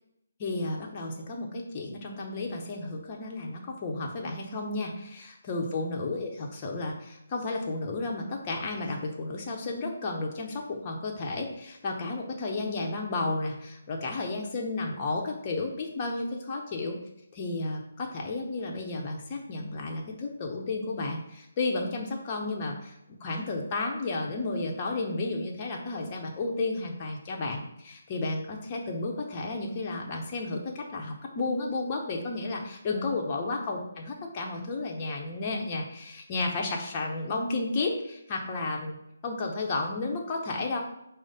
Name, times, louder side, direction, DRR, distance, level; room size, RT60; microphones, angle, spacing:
voice 1, 0.4-17.0 17.3-23.0 23.2-39.0 39.2-40.8, left 3 dB, 30° left, 0 dB, 0.8 m, -32 dB
4.8 x 2.1 x 4.1 m, 0.83 s
figure-of-eight pair, 150°, 0 cm